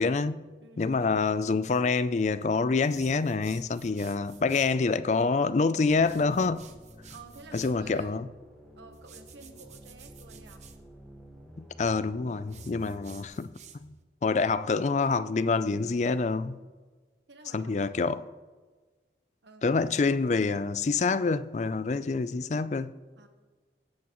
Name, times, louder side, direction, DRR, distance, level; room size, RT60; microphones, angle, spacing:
voice 1, 0.0-0.4 0.8-6.7 7.5-8.3 11.6-13.5 13.8-13.9 14.2-16.6 17.5-18.2 19.6-22.9, left 4 dB, 40° left, 0.4 m, -27 dB
voice 2, 0.6-1.4 7.1-8.2 8.8-10.7 17.3-18.1 19.4-19.6 23.2-23.3, right 3 dB, 90° right, 1.1 m, -51 dB
sound 1, 2.8-4.8 5.9-7.8 8.9-10.8 12.4-14.0, right 6 dB, 40° right, 0.8 m, -52 dB
sound 2, 5.9-13.2, equal, 5° left, 1.5 m, -51 dB
23.0 x 8.5 x 3.1 m
head